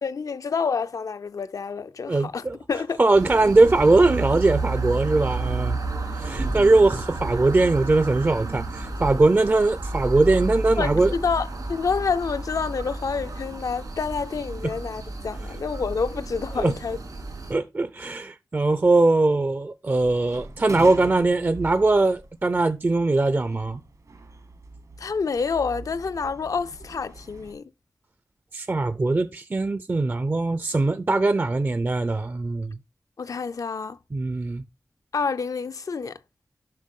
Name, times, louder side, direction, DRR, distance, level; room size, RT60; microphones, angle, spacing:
voice 1, 0.0-3.0 10.8-17.0 25.0-27.6 33.2-34.0 35.1-36.2, left 5 dB, 65° left, 0.4 m, -28 dB
voice 2, 2.1-2.6 3.0-5.8 6.2-11.1 16.6-16.7 17.5-23.8 28.5-32.8 34.1-34.6, right 2 dB, 30° right, 0.4 m, -21 dB
sound 1, 3.1-17.5, right 3 dB, 80° right, 2.9 m, -31 dB
sound 2, 20.0-27.5, right 2 dB, 65° right, 1.2 m, -42 dB
7.5 x 5.9 x 3.6 m
wide cardioid pair, 95°, 6 cm